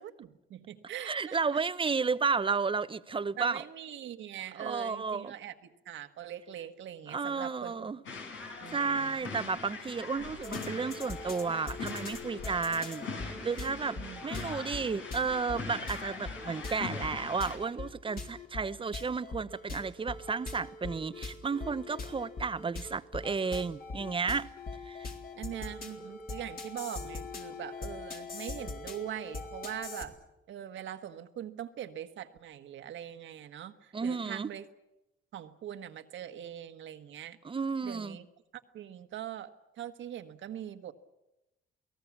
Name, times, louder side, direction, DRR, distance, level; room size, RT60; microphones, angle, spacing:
voice 1, 0.0-1.6 3.4-7.9 8.6-9.3 13.9-14.4 25.3-30.1 30.5-34.6 35.3-37.4 37.8-38.3 38.7-39.5 39.8-40.9, right 11 dB, 75° right, 1.5 m, -42 dB
voice 2, 1.0-3.6 4.6-5.3 7.1-8.0 8.7-24.5 24.9-25.1 33.9-34.5 37.4-38.2, right 5 dB, 25° right, 0.8 m, -32 dB
sound 1, 8.0-17.6, left 4 dB, 80° left, 5.5 m, -42 dB
sound 2, 10.4-30.0, left 3 dB, 50° left, 3.8 m, -42 dB
28.0 x 18.5 x 7.3 m
cardioid pair, 90°, 20 cm